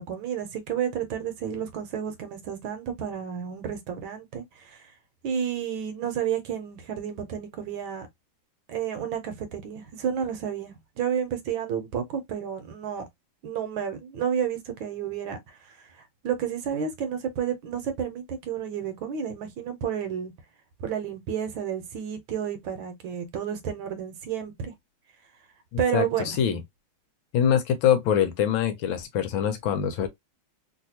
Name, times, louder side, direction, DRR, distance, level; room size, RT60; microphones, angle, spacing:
voice 1, 0.0-4.9 5.2-8.1 8.7-13.0 13.4-15.8 16.2-20.3 20.8-24.7 25.8-26.4, right 8 dB, 70° right, 1.4 m, -31 dB
voice 2, 25.9-26.6 27.3-30.1, left 9 dB, 75° left, 1.3 m, -24 dB
3.2 x 2.7 x 2.7 m
omnidirectional pair, 2.3 m